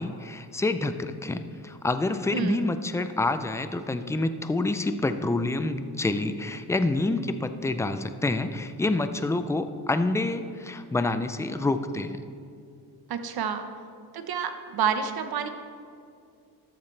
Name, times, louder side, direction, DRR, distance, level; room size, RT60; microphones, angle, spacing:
voice 1, 0.0-12.2, left 2 dB, 10° left, 9 dB, 0.3 m, -27 dB
voice 2, 2.3-2.7 13.1-13.7 14.1-15.5, right 7 dB, 60° right, 8 dB, 1.0 m, -29 dB
13.0 x 12.5 x 3.3 m, 2.3 s
cardioid pair, 140°, 41 cm